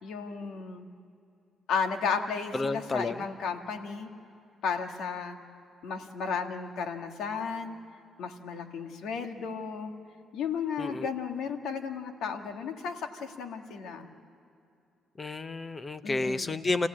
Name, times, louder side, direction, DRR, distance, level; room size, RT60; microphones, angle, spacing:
voice 1, 0.0-0.9 1.7-4.1 4.6-5.4 5.8-7.8 8.2-9.9 10.3-14.1 16.0-16.6, left 6 dB, 80° left, 5 dB, 1.8 m, -34 dB
voice 2, 2.5-3.2 10.8-11.1 15.2-16.9, left 3 dB, 30° left, 12 dB, 0.8 m, -31 dB
28.0 x 16.0 x 8.5 m, 2.6 s
cardioid pair, 90°, 0 cm